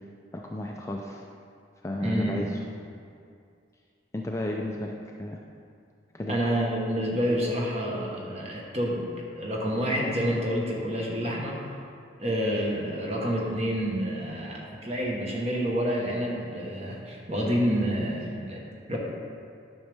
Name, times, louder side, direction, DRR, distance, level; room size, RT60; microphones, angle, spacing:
voice 1, 0.3-1.2 1.8-2.6 4.1-5.4 6.1-6.4, left 1 dB, 15° left, 0 dB, 0.3 m, -33 dB
voice 2, 2.0-2.5 6.3-9.0 9.3-11.6 12.2-19.0, equal, 30° right, -3 dB, 1.2 m, -28 dB
9.8 x 6.3 x 3.5 m, 2.3 s
head